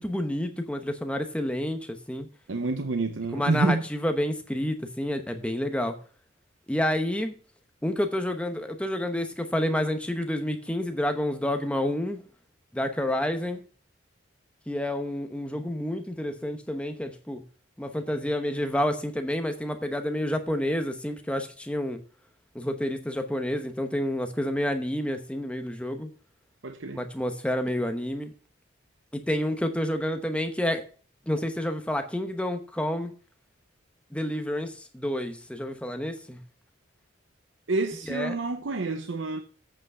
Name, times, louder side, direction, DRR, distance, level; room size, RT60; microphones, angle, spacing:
voice 1, 0.0-2.3 3.3-5.9 6.7-7.3 7.8-12.2 12.7-13.6 14.7-17.4 17.8-22.0 22.5-26.1 26.9-28.3 29.1-30.8 31.3-33.1 34.1-36.4 38.1-38.4, left 1 dB, 5° left, 0.9 m, -29 dB
voice 2, 2.5-3.8 26.6-27.0 37.7-39.4, right 3 dB, 75° right, 0.7 m, -28 dB
8.4 x 5.8 x 5.5 m
head